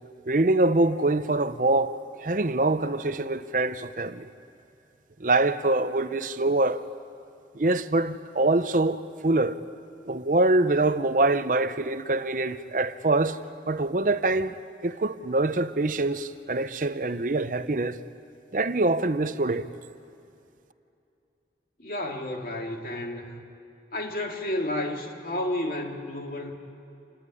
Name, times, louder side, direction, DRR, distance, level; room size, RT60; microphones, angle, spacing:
voice 1, 0.3-4.3 5.2-6.8 7.5-9.6 10.0-13.4 13.7-14.5 14.8-18.0 18.5-19.7, right 2 dB, 45° right, 0.7 m, -24 dB
voice 2, 21.8-23.4 23.9-26.5, left 1 dB, 50° left, 2.6 m, -31 dB
28.0 x 19.0 x 9.9 m
head